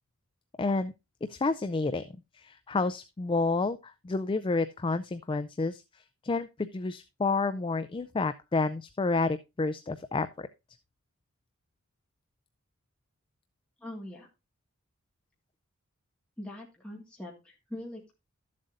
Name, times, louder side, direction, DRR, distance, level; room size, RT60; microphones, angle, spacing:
voice 1, 0.6-0.9 1.3-2.0 2.3-10.5, left 3 dB, 25° left, 11 dB, 0.4 m, -30 dB
voice 2, 13.8-14.3 16.4-18.1, left 1 dB, 5° left, -3 dB, 1.9 m, -42 dB
13.0 x 7.5 x 2.5 m, 0.25 s
head